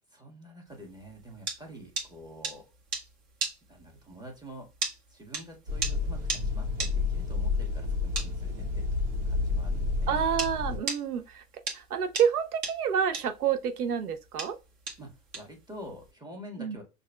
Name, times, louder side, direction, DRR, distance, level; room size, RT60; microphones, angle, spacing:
voice 1, 0.1-2.6 3.7-4.7 5.1-9.0 9.2-10.4 15.0-16.8, equal, 10° right, 1.5 m, -47 dB
sound 1, 0.9-10.5 10.9-16.1, right 4 dB, 40° right, 1.7 m, -35 dB
sound 2, 5.7-10.8, left 4 dB, 55° right, 1.6 m, -30 dB
voice 2, 10.1-11.4 11.7-14.6 16.6-16.8, right 8 dB, 80° right, 0.9 m, -28 dB
6.3 x 2.7 x 2.2 m
hypercardioid pair, 95°, 44 cm